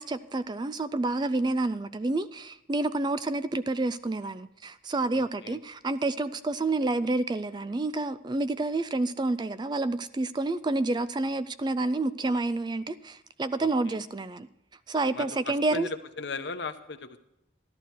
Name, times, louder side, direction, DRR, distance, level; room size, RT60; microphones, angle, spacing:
voice 1, 0.0-14.5 14.9-15.9, right 2 dB, 20° right, 14 dB, 0.3 m, -29 dB
voice 2, 5.1-5.6 13.6-14.0 15.1-17.2, left 3 dB, 60° left, 9 dB, 1.0 m, -37 dB
13.0 x 11.5 x 4.6 m, 0.86 s
head